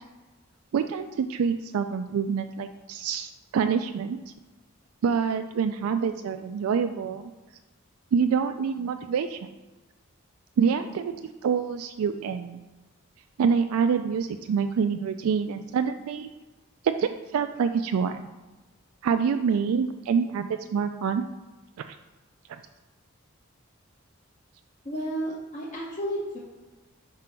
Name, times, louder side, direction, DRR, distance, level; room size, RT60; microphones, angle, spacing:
voice 1, 0.7-4.2 5.0-7.3 8.1-9.5 10.6-11.1 11.4-12.6 13.4-16.3 16.8-18.2 19.0-21.2, right 6 dB, 85° right, 8 dB, 0.3 m, -26 dB
voice 2, 24.8-26.4, right 1 dB, 35° left, -5 dB, 0.8 m, -32 dB
4.8 x 3.7 x 5.6 m, 1.2 s
head